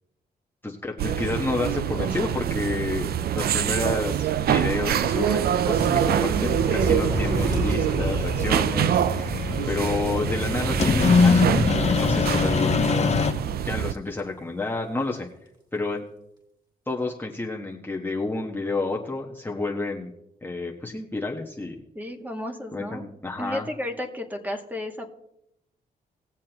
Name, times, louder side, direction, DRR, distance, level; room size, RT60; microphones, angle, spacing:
voice 1, 0.6-15.3 15.7-16.0 16.9-20.1 20.4-21.8 22.7-23.7, left 3 dB, 10° left, -1 dB, 1.3 m, -30 dB
sound 1, 1.0-13.9, right 10 dB, 65° right, 0.5 m, -25 dB
Thunder / Rain, 4.5-13.1 13.4-13.6 13.9-14.2, right 2 dB, 25° right, 3.2 m, -34 dB
sound 2, 5.7-13.3, left 5 dB, 40° left, 0.9 m, -24 dB
voice 2, 21.9-23.0 23.4-25.1, left 1 dB, 10° right, 3 dB, 1.8 m, -33 dB
19.5 x 7.3 x 3.0 m, 0.81 s
cardioid pair, 85°, 17 cm